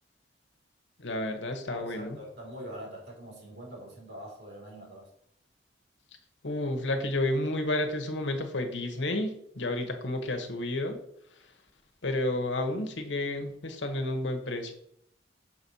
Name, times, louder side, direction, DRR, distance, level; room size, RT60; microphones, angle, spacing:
voice 1, 1.0-2.2 6.4-11.0 12.0-14.7, left 1 dB, 80° left, 5 dB, 1.2 m, -31 dB
voice 2, 1.6-5.1, equal, 60° right, -2 dB, 3.1 m, -44 dB
6.2 x 4.2 x 6.2 m, 0.70 s
head